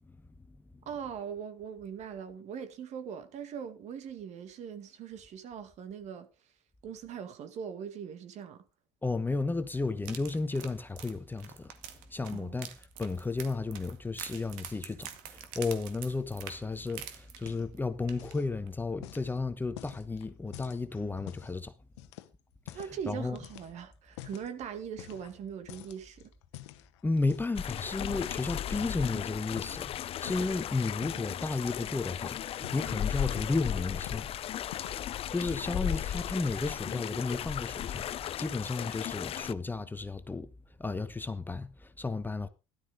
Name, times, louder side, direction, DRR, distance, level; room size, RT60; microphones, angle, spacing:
voice 1, 0.1-0.8 9.0-11.7 12.1-12.7 13.0-21.7 22.7-23.4 27.0-34.3 35.3-40.5 40.8-42.5, left 3 dB, 15° left, 1.0 m, -33 dB
voice 2, 0.9-6.3 6.8-8.6 12.3-12.6 22.7-26.3, right 7 dB, 55° right, 2.0 m, -41 dB
sound 1, 10.0-17.8 18.1-18.3 18.7-18.8, right 10 dB, 75° right, 2.0 m, -45 dB
sound 2, 17.3-17.9 18.1-18.5 19.0-21.6 22.0-23.0 23.4-24.5 25.0-25.4 25.7-27.6 28.1-28.4 28.8-29.1 29.4-30.6 31.0-31.3 31.7-32.2 32.5-33.7 34.1-34.3 34.6-35.1, left 16 dB, 85° left, 1.0 m, -48 dB
sound 3, 27.6-39.5, left 11 dB, 40° left, 0.5 m, -36 dB
13.0 x 12.0 x 3.7 m
supercardioid pair, 90°, 14 cm